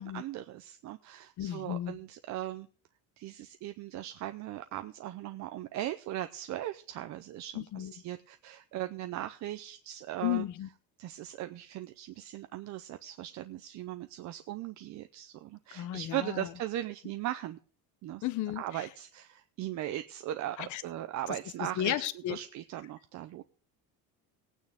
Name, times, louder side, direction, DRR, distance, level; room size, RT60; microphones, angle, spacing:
voice 1, 0.0-2.7 3.2-10.4 11.0-17.6 18.0-18.2 18.6-21.9 22.3-23.4, right 13 dB, 50° right, 9 dB, 0.6 m, -38 dB
voice 2, 1.4-2.0 7.5-7.9 10.2-10.7 15.7-16.5 18.2-18.8 20.6-20.8 21.6-22.4, left 13 dB, 50° left, 14 dB, 0.9 m, -34 dB
19.0 x 9.1 x 3.6 m, 0.42 s
cardioid pair, 150°, 38 cm